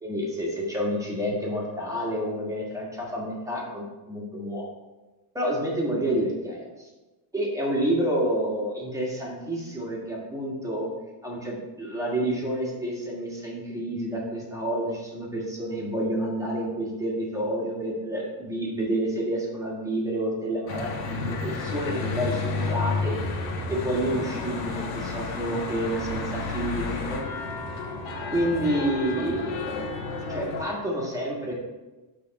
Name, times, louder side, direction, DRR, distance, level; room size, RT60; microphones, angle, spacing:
voice 1, 0.0-4.7 5.3-6.6 7.3-10.9 11.2-23.2 23.7-27.2 28.3-29.7 30.3-31.5, right 1 dB, 5° right, -3 dB, 1.5 m, -29 dB
Church bell / Traffic noise roadway noise, 20.7-30.6, left 3 dB, 70° left, 1.6 m, -31 dB
6.8 x 3.7 x 5.2 m, 1.2 s
cardioid pair, 150°, 49 cm